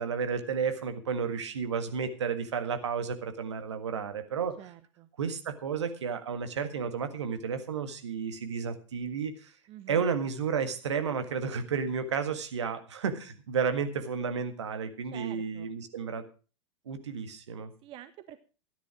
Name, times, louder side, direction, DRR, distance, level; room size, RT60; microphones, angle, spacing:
voice 1, 0.0-4.5 5.2-9.5 9.9-16.2 16.8-17.7, right 6 dB, 65° right, 8 dB, 1.7 m, -32 dB
voice 2, 4.6-5.1 9.7-10.0 15.1-15.7 17.8-18.4, right 12 dB, 35° right, 12 dB, 0.8 m, -47 dB
13.0 x 10.5 x 4.9 m, 0.36 s
figure-of-eight pair, 90°, 16 cm